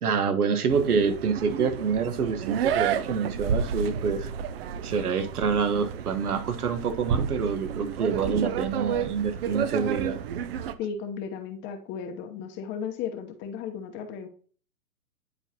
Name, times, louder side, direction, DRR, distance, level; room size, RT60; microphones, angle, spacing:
voice 1, 0.0-4.3 4.8-10.2, right 5 dB, 80° right, 1.5 m, -27 dB
sound 1, 0.7-10.7, right 8 dB, 45° right, 0.6 m, -31 dB
voice 2, 10.8-14.3, left 7 dB, 25° left, 0.9 m, -35 dB
10.5 x 4.5 x 2.9 m
hypercardioid pair, 140°, 44 cm